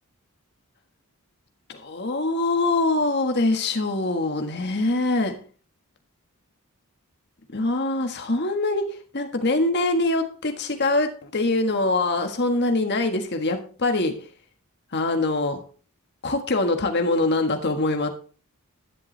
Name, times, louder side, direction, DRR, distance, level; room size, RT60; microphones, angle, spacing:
voice 1, 1.7-5.3 7.5-8.9 9.1-14.1 14.9-15.6 16.2-18.1, left 2 dB, 50° left, 5 dB, 1.5 m, -23 dB
11.0 x 10.5 x 3.3 m, 0.39 s
head